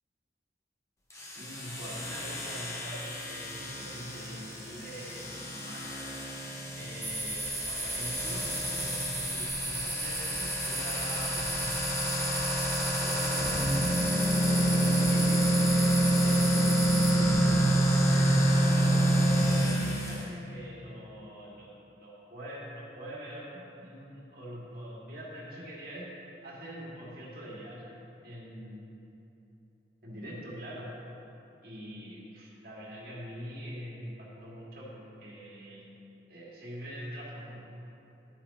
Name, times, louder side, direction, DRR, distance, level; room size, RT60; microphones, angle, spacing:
sound 1, 1.1-20.2, right 1 dB, 15° left, 0.9 m, -28 dB
voice 1, 1.4-5.9 6.7-8.5 8.8-11.6 12.8-13.5 14.7-15.5 16.1-16.8 17.1-18.9 19.4-21.7 22.0-26.1 26.4-27.9 28.2-28.9 30.0-30.9 31.6-35.9 36.3-37.7, equal, 55° right, -6 dB, 2.1 m, -43 dB
sound 2, 7.0-17.1, right 2 dB, ahead, 2.0 m, -35 dB
11.5 x 8.9 x 2.9 m, 2.9 s
head